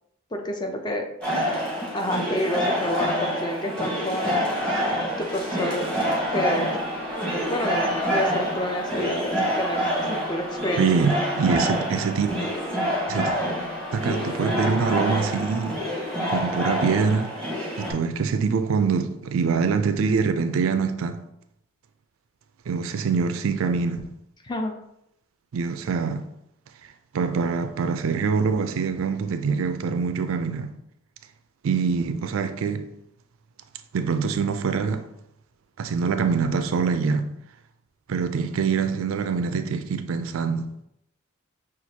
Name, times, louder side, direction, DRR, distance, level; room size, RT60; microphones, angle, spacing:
voice 1, 0.3-1.1 1.9-4.5 5.2-5.9 6.3-6.7 7.5-10.9 24.4-24.7, left 1 dB, 20° left, 0.5 m, -29 dB
sound 1, 1.2-17.9, equal, 5° left, 1.0 m, -27 dB
sound 2, 4.6-15.6, left 1 dB, 60° left, 1.0 m, -40 dB
voice 2, 10.8-12.3 13.1-13.3 13.9-15.8 16.3-17.3 17.8-21.2 22.7-24.0 25.5-26.3 27.1-30.7 31.6-32.9 33.9-35.0 35.8-37.3 38.1-40.7, right 5 dB, 85° right, 0.4 m, -24 dB
5.9 x 2.4 x 2.8 m
head